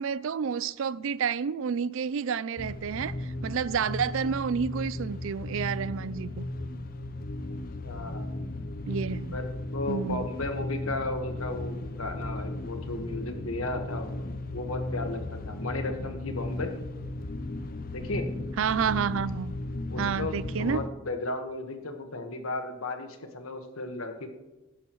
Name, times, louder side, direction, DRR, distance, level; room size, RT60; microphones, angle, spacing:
voice 1, 0.0-6.4 8.9-9.4 9.9-10.2 18.6-19.5 20.0-20.8, right 7 dB, 60° right, 0.4 m, -30 dB
sound 1, 2.6-20.9, left 2 dB, 40° left, 0.6 m, -35 dB
voice 2, 7.8-8.3 9.3-16.7 17.9-18.3 19.9-24.3, left 2 dB, 70° left, 1.5 m, -35 dB
18.0 x 10.5 x 3.1 m
head